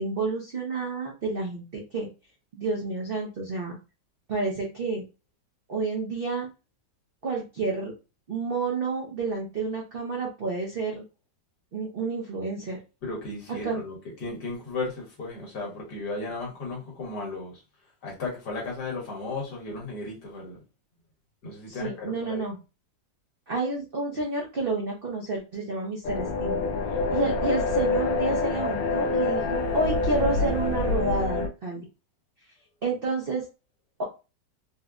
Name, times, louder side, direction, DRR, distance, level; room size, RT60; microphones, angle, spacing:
voice 1, 0.0-2.1 2.5-3.8 4.3-5.0 5.7-6.5 7.2-7.9 8.3-11.0 11.7-12.8 13.6-13.8 21.7-22.6 23.5-26.6 27.1-31.9 32.8-33.5 34.0-34.1, right 3 dB, 65° right, 0.5 m, -30 dB
voice 2, 13.0-14.0 14.2-17.6 18.0-20.6 21.4-22.5, left 3 dB, 70° left, 1.9 m, -35 dB
sound 1, 26.0-31.5, left 3 dB, 90° left, 1.3 m, -26 dB
4.3 x 2.1 x 2.4 m
omnidirectional pair, 1.9 m